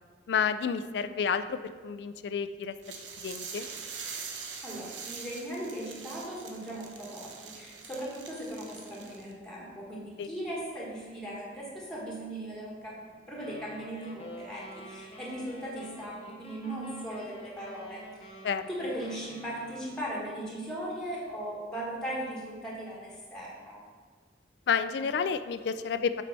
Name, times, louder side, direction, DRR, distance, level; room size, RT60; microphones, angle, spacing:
voice 1, 0.3-3.7 10.2-10.3 18.4-18.7 24.7-26.2, left 6 dB, 65° left, 11 dB, 0.3 m, -30 dB
sound 1, 2.8-9.3, right 5 dB, 90° right, 0.8 m, -43 dB
voice 2, 4.6-18.4 18.7-23.8, right 1 dB, 5° left, -5 dB, 1.4 m, -38 dB
sound 2, 13.3-20.2, equal, 35° left, 0.8 m, -48 dB
7.4 x 4.7 x 4.0 m, 1.5 s
head